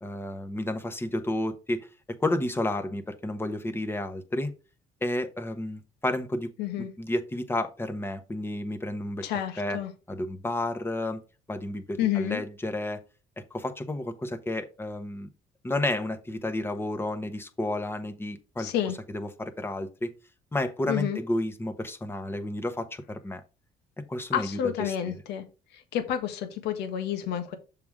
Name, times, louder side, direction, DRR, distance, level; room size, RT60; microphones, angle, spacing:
voice 1, 0.0-1.9 2.2-4.5 5.0-6.5 6.8-9.3 9.6-9.8 10.1-11.2 11.5-13.0 13.5-15.3 15.6-18.7 19.1-20.1 20.5-23.4 24.1-25.1, left 1 dB, 15° left, 1.1 m, -31 dB
voice 2, 6.6-6.9 9.2-9.9 12.0-12.4 18.6-18.9 20.9-21.2 24.3-25.4 25.7-27.6, left 10 dB, 85° left, 1.4 m, -29 dB
6.9 x 3.7 x 4.7 m
cardioid pair, 110°, 17 cm